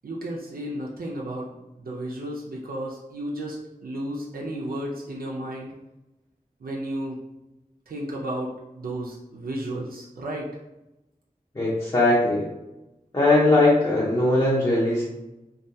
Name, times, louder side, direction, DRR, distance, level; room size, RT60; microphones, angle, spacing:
voice 1, 0.0-3.6 3.8-5.7 6.6-7.2 7.9-10.5, right 1 dB, 85° right, -3 dB, 0.4 m, -33 dB
voice 2, 11.5-12.5 13.1-15.0, left 2 dB, 25° left, -7 dB, 0.6 m, -20 dB
2.3 x 2.2 x 2.6 m, 0.97 s
wide cardioid pair, 60°, 15 cm